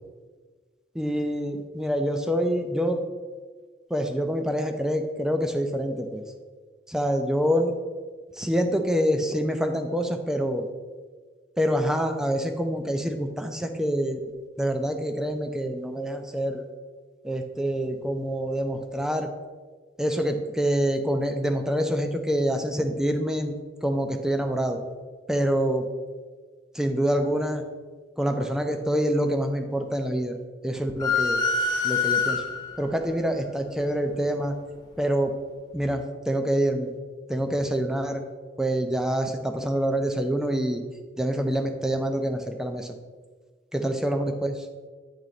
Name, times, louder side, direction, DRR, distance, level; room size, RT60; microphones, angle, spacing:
voice 1, 0.9-3.0 3.9-6.2 6.9-7.7 8.4-10.7 11.6-14.2 14.6-16.6 17.2-19.3 20.0-23.5 23.8-24.8 25.3-25.8 26.7-27.6 28.2-30.3 30.6-31.4 31.8-32.4 32.8-34.5 35.0-35.3 35.7-36.9 37.3-38.2 38.6-40.8 41.2-42.9 43.7-44.5, equal, 5° right, 5 dB, 0.4 m, -26 dB
sound 1, 31.0-32.8, left 5 dB, 25° left, 0.9 m, -25 dB
8.8 x 3.0 x 3.8 m, 1.4 s
head